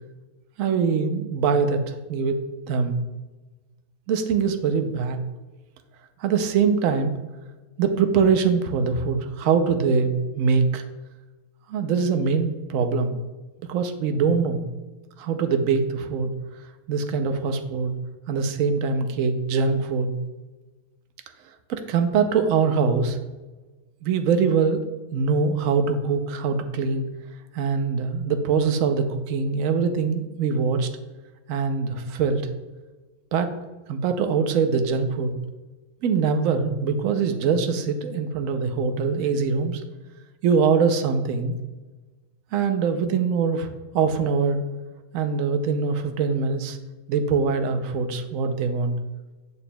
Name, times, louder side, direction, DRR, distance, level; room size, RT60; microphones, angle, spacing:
voice 1, 0.6-2.4 2.7-3.0 4.1-5.2 6.2-7.1 7.8-10.8 11.7-13.2 13.7-14.6 15.2-16.3 16.9-17.9 18.3-20.1 21.7-23.2 24.0-24.8 25.1-27.1 27.5-30.9 31.5-32.4 33.3-33.5 33.9-35.3 36.0-39.8 40.4-41.5 42.5-43.7 43.9-44.6 45.1-46.8 47.1-49.0, right 5 dB, 75° right, 7 dB, 1.0 m, -23 dB
7.0 x 6.7 x 2.2 m, 1.2 s
omnidirectional pair, 1.5 m